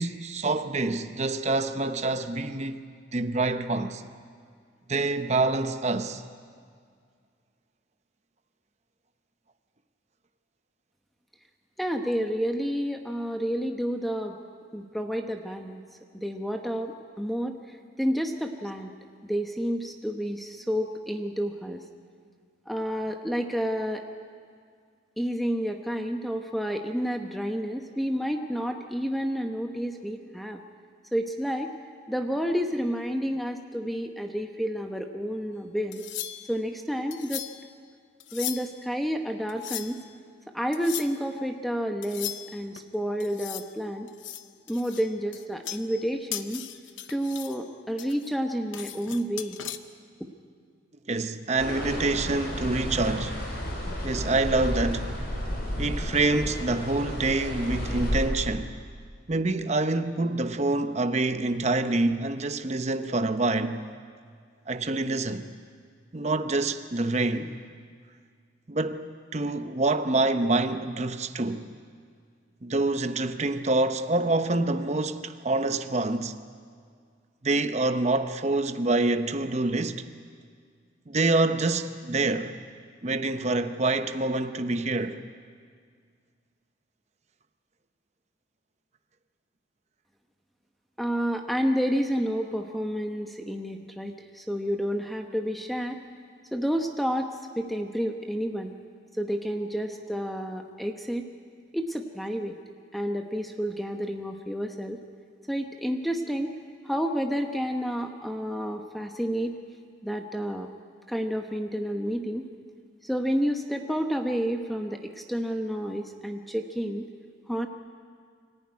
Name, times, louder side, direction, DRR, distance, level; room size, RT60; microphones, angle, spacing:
voice 1, 0.0-2.8 3.1-4.0 4.9-6.2 51.1-53.4 54.0-55.1 55.8-58.7 59.3-63.9 64.7-65.5 66.1-67.5 68.7-71.7 72.6-76.3 77.4-80.0 81.1-82.6 83.0-85.2, right 2 dB, 35° right, 0.8 m, -26 dB
voice 2, 11.8-14.4 14.7-15.8 16.1-18.9 19.2-21.8 22.7-24.0 25.2-30.6 31.1-31.7 32.1-36.0 36.5-37.5 38.3-40.0 40.5-44.1 44.7-46.7 47.1-49.6 50.2-50.3 91.0-96.0 96.5-98.7 99.1-101.2 101.7-102.5 102.9-105.0 105.5-106.5 106.8-109.6 110.0-110.7 111.1-112.5 113.0-117.1 117.5-117.7, equal, ahead, 0.9 m, -30 dB
sound 1, 35.9-36.6 37.1-37.7 38.2-38.8 39.5-40.1 40.7-41.2 42.0-42.8 43.2-43.7 44.1-46.1 46.3-47.6 48.0-49.8, left 12 dB, 80° left, 0.9 m, -38 dB
sound 2, 51.6-58.3, equal, 50° left, 4.4 m, -32 dB
24.5 x 14.5 x 9.6 m
head